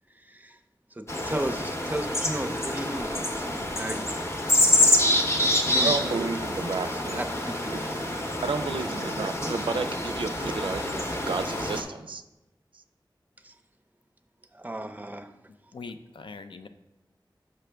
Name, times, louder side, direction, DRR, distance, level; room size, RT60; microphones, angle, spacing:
voice 1, 0.1-0.6 0.9-4.0 5.6-6.3 6.8-7.9 9.4-9.5 13.4-13.5 14.5-15.3, right 1 dB, 20° right, 7 dB, 0.5 m, -35 dB
sound 1, 1.1-11.8, left 1 dB, 35° left, 0.8 m, -27 dB
voice 2, 5.8-7.2 7.7-7.8 8.4-12.2, right 4 dB, 85° right, 10 dB, 0.3 m, -32 dB
voice 3, 15.7-16.7, left 4 dB, 85° left, 9 dB, 0.4 m, -41 dB
6.1 x 5.7 x 3.3 m, 0.98 s
wide cardioid pair, 65°, 8 cm